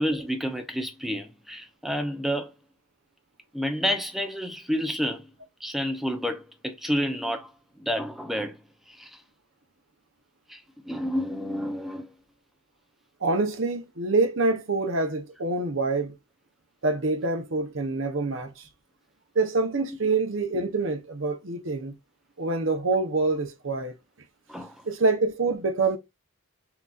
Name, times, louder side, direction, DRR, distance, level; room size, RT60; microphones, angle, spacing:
voice 1, 0.0-2.5 3.5-5.3 5.6-7.5 7.8-8.6 8.9-9.2 10.5-12.1 24.5-24.8, equal, ahead, 0.6 m, -30 dB
voice 2, 13.2-16.1 16.8-18.6 19.3-21.9 22.4-23.9 24.8-26.0, right 3 dB, 70° right, 0.9 m, -26 dB
5.9 x 2.8 x 2.5 m
head